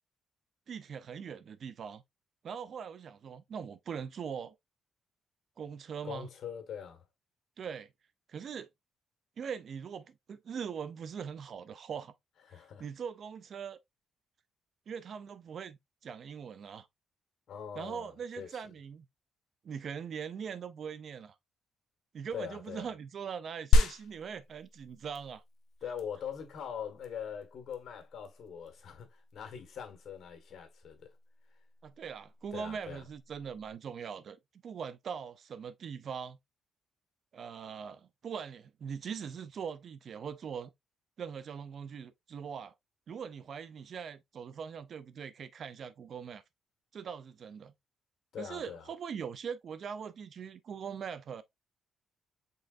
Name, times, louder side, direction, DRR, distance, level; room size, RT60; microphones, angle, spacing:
voice 1, 0.7-2.0 2.4-4.5 5.6-6.3 7.6-7.9 8.3-8.7 9.4-12.1 12.5-13.8 14.9-16.9 17.8-19.1 19.6-21.3 22.1-25.4 31.8-34.4 34.6-36.4 37.3-40.7 41.2-42.7 43.1-46.4 46.9-47.7 48.4-51.4, right 7 dB, 55° right, 0.6 m, -41 dB
voice 2, 6.0-7.0 12.5-12.9 17.5-18.7 22.3-22.9 25.8-31.2 32.5-33.0 48.3-48.9, left 8 dB, 65° left, 1.7 m, -42 dB
sound 1, 23.7-33.7, left 3 dB, 80° left, 0.7 m, -34 dB
5.4 x 3.8 x 2.5 m
cardioid pair, 90°, 0 cm